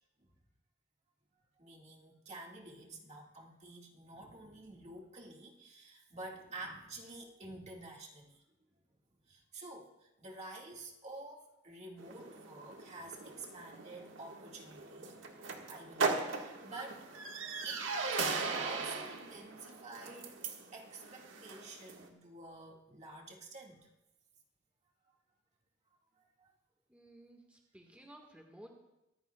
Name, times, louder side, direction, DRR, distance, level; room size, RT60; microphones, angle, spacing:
voice 1, 1.6-8.4 9.3-15.2 15.7-17.3 17.6-20.4 20.7-23.9 26.2-26.5, right 2 dB, 35° right, -1 dB, 2.0 m, -49 dB
sound 1, 12.0-22.1, right 4 dB, 75° right, 1.7 m, -39 dB
voice 2, 26.9-28.7, right 1 dB, 5° right, 1 dB, 1.6 m, -55 dB
24.0 x 14.5 x 2.3 m, 0.93 s
head